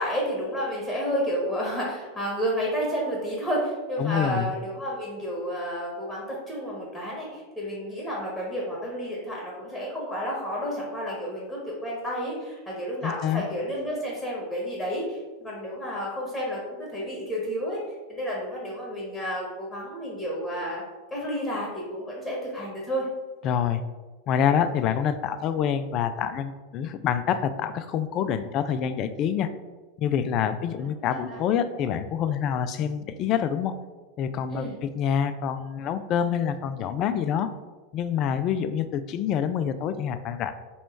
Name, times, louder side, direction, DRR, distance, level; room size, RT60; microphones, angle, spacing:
voice 1, 0.0-17.8 18.1-20.8 21.1-23.1 30.4-31.4 34.5-34.8, equal, 5° left, -4 dB, 1.2 m, -31 dB
voice 2, 4.0-4.5 13.0-13.4 23.4-23.8 24.3-29.5 30.0-33.8 34.2-37.5 37.9-40.5, left 8 dB, 40° left, 11 dB, 0.3 m, -26 dB
3.1 x 3.0 x 4.6 m, 1.3 s
figure-of-eight pair, 90°, 0 cm